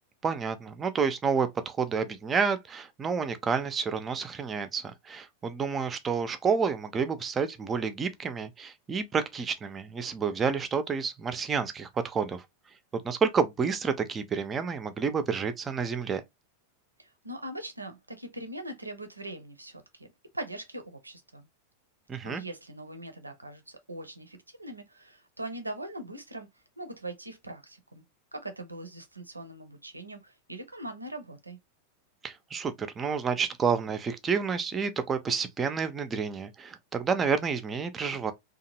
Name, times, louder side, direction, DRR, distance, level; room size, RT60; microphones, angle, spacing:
voice 1, 0.2-12.4 13.0-16.2 22.1-22.4 32.2-38.3, right 6 dB, 20° right, 0.4 m, -29 dB
voice 2, 17.0-20.1 20.3-21.5 22.2-26.5 26.8-28.0 28.3-31.6, right 1 dB, 85° right, 0.5 m, -41 dB
2.7 x 2.3 x 2.9 m
figure-of-eight pair, 90°, 0 cm